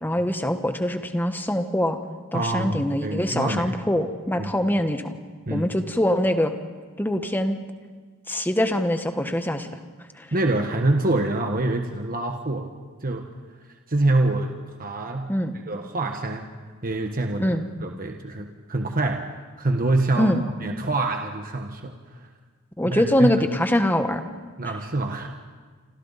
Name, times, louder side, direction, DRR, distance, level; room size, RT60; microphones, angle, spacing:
voice 1, 0.0-2.0 2.3-5.1 5.5-6.5 7.0-7.6 8.3-9.7 10.2-10.3 15.3-15.5 17.4-17.6 20.2-20.4 22.8-24.2, left 1 dB, 10° left, 7 dB, 1.3 m, -23 dB
voice 2, 2.3-3.8 4.4-4.5 5.5-5.7 10.3-12.7 13.0-13.3 13.9-14.5 14.8-15.3 15.7-16.5 16.8-19.2 19.6-20.3 20.6-21.9 22.8-23.3 24.6-25.3, right 2 dB, 40° right, 3 dB, 1.3 m, -25 dB
29.0 x 26.0 x 4.1 m, 1.5 s
head